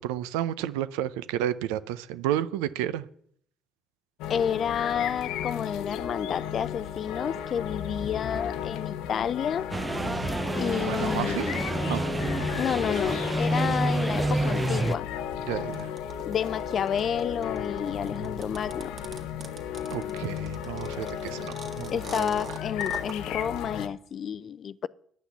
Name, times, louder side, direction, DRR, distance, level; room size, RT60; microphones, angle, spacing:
voice 1, 0.0-3.1 10.8-11.5 11.8-12.1 15.4-15.9 19.9-22.3, right 12 dB, 90° right, 0.5 m, -31 dB
sound 1, 4.2-23.9, left 9 dB, 80° left, 0.7 m, -34 dB
voice 2, 4.3-9.7 10.6-11.6 12.5-15.1 16.3-18.9 21.9-24.9, left 8 dB, 55° left, 0.4 m, -30 dB
sound 2, 9.7-15.0, right 2 dB, 20° right, 0.4 m, -28 dB
sound 3, 15.7-23.2, right 5 dB, 50° right, 1.9 m, -42 dB
10.5 x 5.9 x 8.2 m
supercardioid pair, 70°, 0 cm